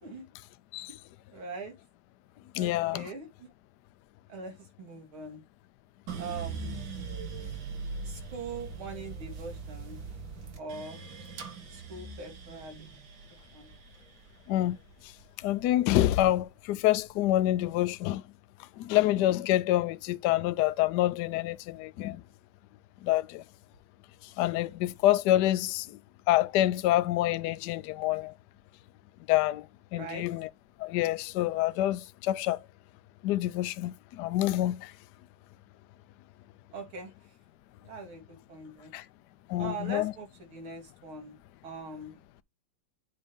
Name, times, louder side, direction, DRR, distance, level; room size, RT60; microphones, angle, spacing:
voice 1, 1.3-1.7 2.5-3.5 4.3-5.4 6.2-6.8 8.1-10.0 10.6-11.0 11.7-12.9 13.5-13.7 29.9-30.3 36.7-37.1 37.8-38.9 39.6-41.3 41.6-42.2, right 3 dB, 90° right, 3.1 m, -42 dB
voice 2, 2.5-3.1 14.5-14.8 15.4-18.2 18.8-22.2 23.0-23.4 24.4-26.0 26.3-28.3 29.3-29.6 29.9-30.5 30.8-32.6 33.2-34.9 38.9-39.0 39.5-40.1, left 14 dB, 75° left, 1.0 m, -27 dB
sound 1, 6.1-16.3 16.7-17.5, right 4 dB, 70° right, 2.2 m, -41 dB
8.2 x 2.8 x 5.2 m
omnidirectional pair, 2.2 m